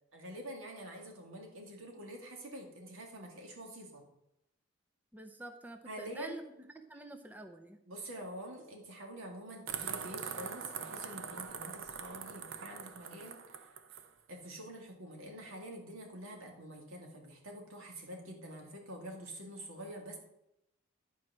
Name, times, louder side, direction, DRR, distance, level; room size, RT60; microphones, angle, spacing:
voice 1, 0.1-4.0 5.9-6.4 7.9-13.4 14.3-20.2, right 1 dB, 90° right, 1 dB, 2.1 m, -46 dB
voice 2, 5.1-7.8, right 2 dB, 10° right, 6 dB, 0.5 m, -48 dB
sound 1, 9.7-14.1, right 6 dB, 70° right, 0.7 m, -42 dB
11.0 x 4.7 x 6.1 m, 0.85 s
head